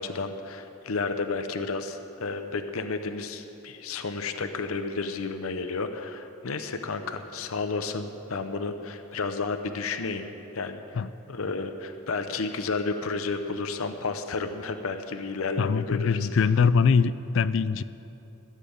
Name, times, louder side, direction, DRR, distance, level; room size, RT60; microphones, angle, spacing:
voice 1, 0.0-16.3, left 4 dB, 85° left, 8 dB, 0.7 m, -32 dB
voice 2, 15.6-17.8, left 5 dB, 65° left, 16 dB, 0.4 m, -22 dB
13.5 x 7.5 x 8.6 m, 3.0 s
head